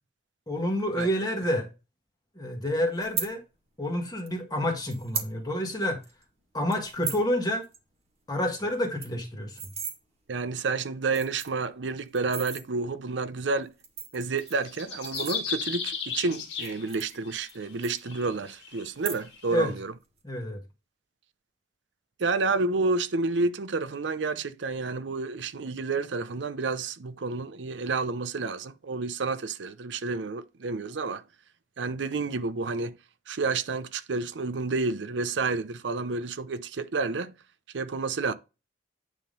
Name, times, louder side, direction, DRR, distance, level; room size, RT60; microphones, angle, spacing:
voice 1, 0.5-1.7 2.4-3.4 3.8-6.0 6.5-7.6 8.3-9.6 19.5-19.7 20.2-20.6, left 1 dB, 20° left, 1.7 m, -28 dB
sound 1, 3.0-3.3 4.3-4.4 4.9-5.3 5.7-5.8 6.0-6.2 6.7-7.3 7.6-7.8 8.1-8.2 8.5-8.6 8.8-10.0 10.6-10.7 11.0-11.6 12.1-12.6 13.6-15.8 16.5-17.6 17.8-18.5 18.9-19.5 19.8-20.2, right 6 dB, 35° right, 1.6 m, -36 dB
voice 2, 10.3-13.7 14.1-19.9 22.2-31.2 31.8-33.0 33.3-37.3 37.7-38.3, right 3 dB, 80° right, 0.6 m, -30 dB
sound 2, 14.4-17.4 18.0-19.5, left 6 dB, 65° left, 2.0 m, -35 dB
9.2 x 3.7 x 5.2 m
head